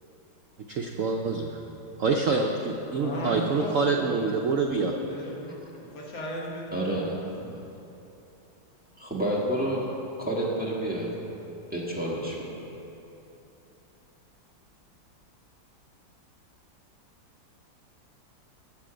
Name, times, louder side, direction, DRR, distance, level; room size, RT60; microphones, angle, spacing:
voice 1, 0.7-1.6 2.0-4.9, right 4 dB, 75° right, 2 dB, 0.7 m, -26 dB
voice 2, 3.0-4.3 4.7-7.6, equal, 80° left, -3 dB, 2.4 m, -36 dB
voice 3, 6.7-7.1 9.0-9.8 10.2-11.1 11.7-12.4, right 1 dB, 5° right, -5 dB, 1.4 m, -29 dB
13.5 x 7.7 x 5.0 m, 2.9 s
omnidirectional pair, 2.1 m